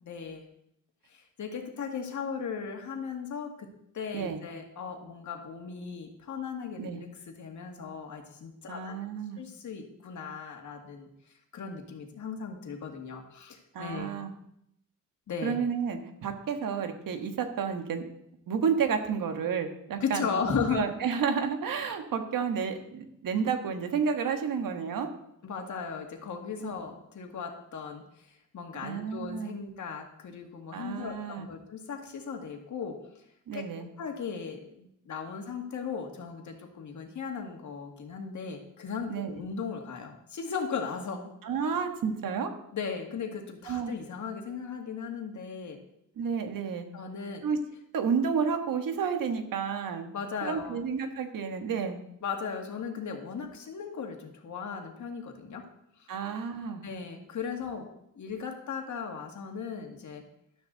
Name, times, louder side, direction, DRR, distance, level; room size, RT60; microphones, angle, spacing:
voice 1, 0.0-0.5 1.1-3.7 3.9-9.1 9.4-11.1 11.5-14.1 15.3-15.6 20.0-20.8 25.4-28.0 28.5-33.0 33.5-33.7 34.0-41.3 42.7-45.8 46.9-47.4 50.1-50.8 52.2-55.6 56.8-57.9 58.1-60.2, left 6 dB, 60° left, 3 dB, 2.2 m, -37 dB
voice 2, 8.7-9.4 13.7-14.3 15.4-18.1 18.5-20.4 20.7-25.1 26.6-26.7 28.8-29.6 30.7-31.5 33.5-33.9 39.1-39.3 41.4-42.5 43.7-43.9 46.2-46.9 47.4-47.6 47.9-50.1 50.4-52.0 56.1-56.8, right 6 dB, 90° right, 6 dB, 1.7 m, -31 dB
13.0 x 12.5 x 4.0 m, 0.76 s
wide cardioid pair, 150°, 32 cm